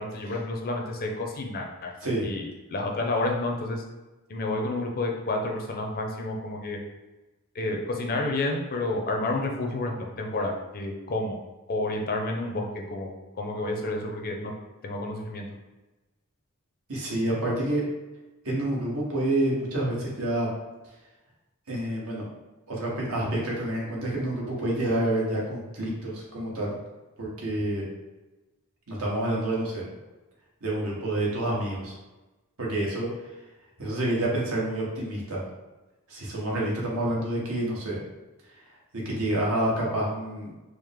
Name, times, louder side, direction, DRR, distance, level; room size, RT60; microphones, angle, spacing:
voice 1, 0.0-1.9 2.2-3.8 4.3-6.8 7.5-11.4 11.7-14.5 14.8-15.5, left 2 dB, 45° left, 2 dB, 0.6 m, -30 dB
voice 2, 16.9-17.8 18.4-20.5 21.7-22.2 22.7-26.8 27.2-27.8 28.9-29.8 30.6-31.9 32.6-33.1 33.8-35.4 36.1-38.0 39.0-40.5, right 1 dB, 75° right, -4 dB, 1.2 m, -28 dB
4.7 x 2.0 x 3.4 m, 1.1 s
head